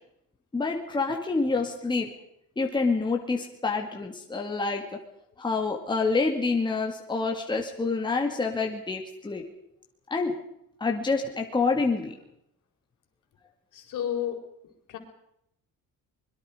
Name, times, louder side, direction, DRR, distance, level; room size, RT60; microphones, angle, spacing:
voice 1, 0.5-2.1 2.6-5.0 5.4-9.4 10.1-10.3 10.8-12.1, left 4 dB, 15° left, 1 dB, 2.4 m, -27 dB
voice 2, 13.7-14.4 14.9-15.0, left 10 dB, 60° left, 5 dB, 4.6 m, -31 dB
25.0 x 22.0 x 5.1 m, 0.78 s
cardioid pair, 165°, 35 cm